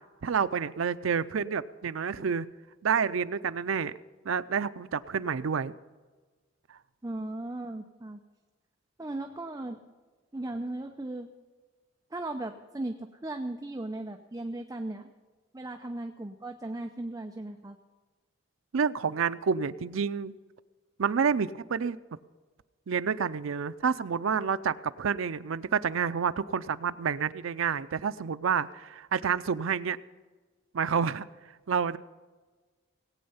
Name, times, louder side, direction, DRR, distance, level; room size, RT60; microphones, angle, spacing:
voice 1, 0.2-2.5 2.8-3.9 4.2-5.7 18.7-20.3 21.0-22.0 22.9-30.0 30.7-31.3 31.7-32.0, right 6 dB, 90° right, 13 dB, 0.5 m, -29 dB
voice 2, 7.0-8.2 9.0-9.8 10.3-11.3 12.1-15.1 15.5-17.8, right 2 dB, 15° right, 5 dB, 0.6 m, -37 dB
18.5 x 8.7 x 5.6 m, 1.4 s
head